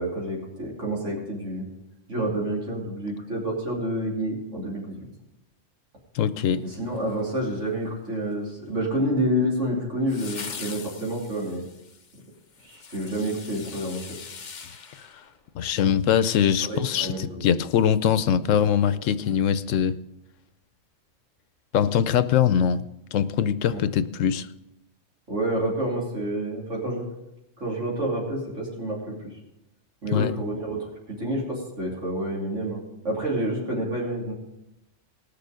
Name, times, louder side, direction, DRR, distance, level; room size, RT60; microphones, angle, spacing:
voice 1, 0.0-1.7 2.1-5.0 6.6-11.6 12.6-14.1 16.6-17.5 18.8-19.0 23.7-23.8 25.3-27.1 27.6-29.3 30.0-30.8 31.1-34.3, right 1 dB, 75° right, -4 dB, 3.4 m, -28 dB
voice 2, 6.1-6.6 15.6-19.9 21.7-22.8 23.1-24.5 30.1-30.3, left 8 dB, 90° left, 14 dB, 1.0 m, -22 dB
sound 1, 6.6-7.6 10.1-15.9 16.3-16.4, left 5 dB, 40° left, 0.8 m, -42 dB
19.5 x 6.9 x 5.1 m, 0.88 s
omnidirectional pair, 1.3 m